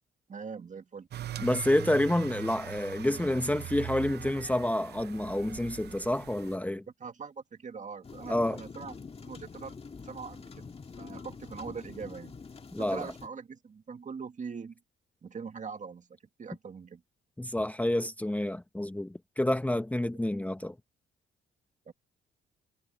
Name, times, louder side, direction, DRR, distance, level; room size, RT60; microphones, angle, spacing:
voice 1, 0.3-1.1 7.0-8.9 9.2-9.7 10.0-12.4 12.8-14.8 15.2-16.1 16.4-17.0 21.9-22.0, right 5 dB, 40° right, 1.9 m, -42 dB
sound 1, 1.1-6.6, right 12 dB, 55° right, 0.7 m, -41 dB
voice 2, 1.4-6.8 8.3-8.6 12.7-13.1 17.4-20.8, left 1 dB, 5° left, 1.0 m, -29 dB
sound 2, 8.0-13.3, left 5 dB, 30° left, 1.9 m, -46 dB
cardioid pair, 90°, 20 cm